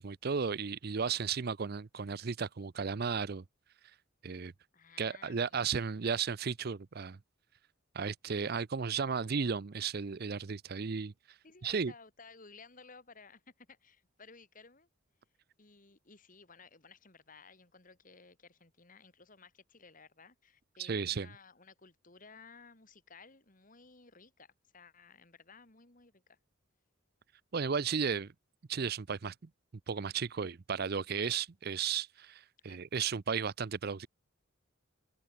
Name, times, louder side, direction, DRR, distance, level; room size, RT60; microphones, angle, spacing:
voice 1, 0.0-3.4 4.2-4.5 5.0-7.2 7.9-11.1 11.6-11.9 20.8-21.3 27.5-28.3 28.7-29.3 29.9-34.1, right 6 dB, 50° right, 0.5 m, -34 dB
voice 2, 4.7-5.7 11.4-14.9 15.6-26.4 32.7-32.8, left 4 dB, 40° left, 2.5 m, -57 dB
head